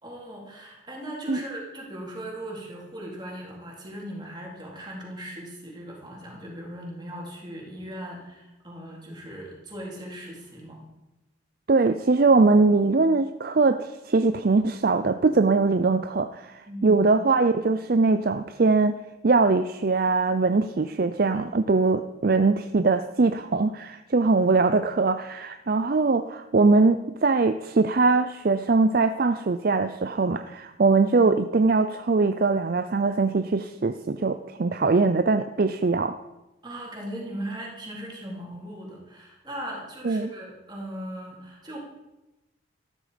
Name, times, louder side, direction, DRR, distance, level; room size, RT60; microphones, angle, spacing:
voice 1, 0.0-10.8 16.7-17.1 36.6-41.8, right 1 dB, 20° right, -3 dB, 3.6 m, -38 dB
voice 2, 11.7-19.0 19.2-36.2 40.0-40.3, right 3 dB, 50° right, 10 dB, 0.5 m, -22 dB
13.5 x 12.5 x 5.2 m, 1.0 s
head